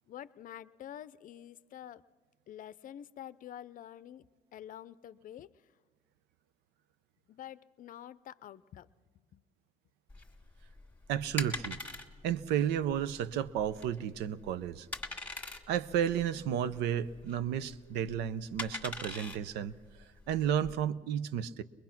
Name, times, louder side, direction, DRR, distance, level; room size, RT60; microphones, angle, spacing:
voice 1, 0.1-2.1 2.5-5.7 7.3-8.9 9.1-9.4, left 11 dB, 55° left, 17 dB, 0.6 m, -48 dB
sound 1, 10.1-20.7, left 2 dB, 10° left, 1.9 m, -43 dB
voice 2, 11.1-11.8 12.2-14.9 15.7-21.6, right 9 dB, 90° right, 15 dB, 0.7 m, -32 dB
22.0 x 21.5 x 5.9 m, 1.4 s
cardioid pair, 110°, 17 cm